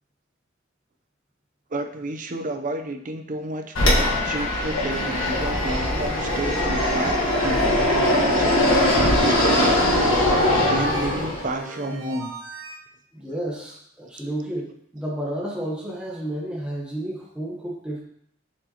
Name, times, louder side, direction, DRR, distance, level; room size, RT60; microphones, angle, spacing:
voice 1, 1.7-10.1 10.5-12.3, right 2 dB, 40° right, 5 dB, 0.6 m, -31 dB
Fixed-wing aircraft airplane, 3.7-11.5, left 1 dB, 80° left, 1.4 m, -21 dB
sound 1, 5.9-12.7, right 2 dB, 75° right, 1.5 m, -40 dB
voice 2, 13.1-18.0, right 1 dB, 5° right, -5 dB, 0.9 m, -31 dB
7.0 x 4.7 x 2.9 m, 0.71 s
head